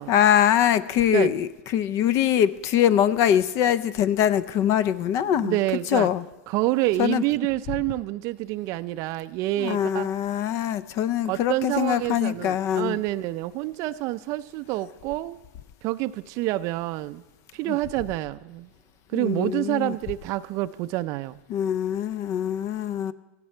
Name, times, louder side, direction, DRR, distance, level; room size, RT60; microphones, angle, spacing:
voice 1, 0.1-5.6 5.9-6.2 7.0-7.2 9.6-13.0 17.7-17.8 19.1-19.9 21.5-23.1, left 10 dB, 45° left, 17 dB, 0.5 m, -23 dB
voice 2, 5.3-6.1 6.5-10.1 11.3-15.4 15.8-17.2 17.5-18.7 19.1-21.4, right 16 dB, 45° right, 12 dB, 0.4 m, -27 dB
16.5 x 16.0 x 4.4 m, 1.1 s
hypercardioid pair, 120°, 7 cm